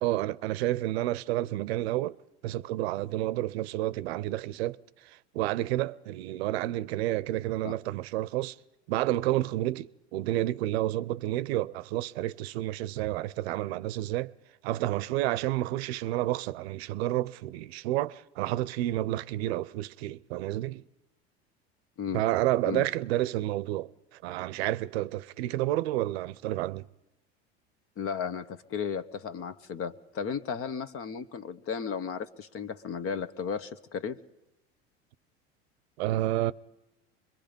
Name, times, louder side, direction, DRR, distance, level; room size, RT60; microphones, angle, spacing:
voice 1, 0.0-2.2 2.4-4.8 5.1-8.6 8.9-14.3 14.6-20.8 22.1-23.9 24.2-26.9 36.0-36.5, right 15 dB, 75° right, 0.7 m, -30 dB
voice 2, 28.0-34.2, left 6 dB, 45° left, 1.3 m, -34 dB
24.5 x 22.0 x 5.2 m
hypercardioid pair, 85°, 32 cm